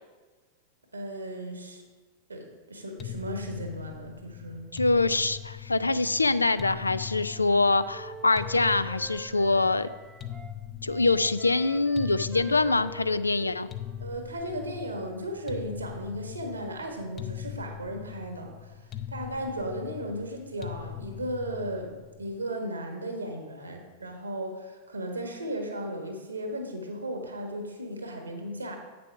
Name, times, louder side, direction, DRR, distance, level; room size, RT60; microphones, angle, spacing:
voice 1, 0.9-1.8 2.3-4.8 14.0-18.8 19.1-28.8, right 1 dB, 80° right, 3 dB, 1.5 m, -36 dB
sound 1, 3.0-22.3, left 10 dB, 30° left, 0.6 m, -41 dB
voice 2, 4.7-9.9 10.8-13.7, left 3 dB, 80° left, 14 dB, 0.3 m, -24 dB
Wind instrument woodwind instrument, 7.0-10.6 10.9-14.7, right 4 dB, 20° right, 0.6 m, -47 dB
8.4 x 6.9 x 4.8 m, 1.3 s
figure-of-eight pair, 90°, 0 cm